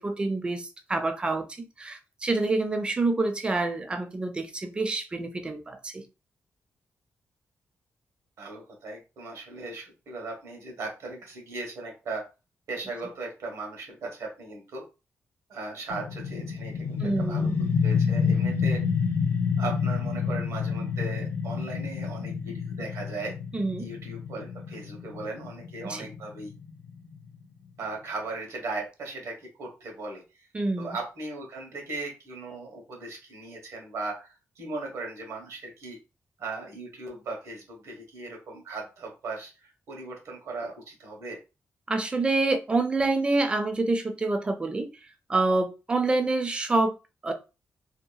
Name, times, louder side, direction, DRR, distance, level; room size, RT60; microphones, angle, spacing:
voice 1, 0.0-1.5 1.8-6.0 17.0-17.6 23.5-23.9 25.8-26.1 30.5-31.0 41.9-44.9 45.3-46.9 47.2-47.3, right 3 dB, 20° right, 0.4 m, -27 dB
voice 2, 8.4-12.2 12.7-14.8 15.5-17.5 17.8-18.8 19.6-23.3 23.8-26.5 27.8-30.5 30.8-36.0 36.4-41.4, right 3 dB, 85° right, 1.1 m, -38 dB
sound 1, 15.9-27.3, left 6 dB, 45° left, 0.4 m, -29 dB
2.8 x 2.3 x 2.3 m
wide cardioid pair, 160°, 5 cm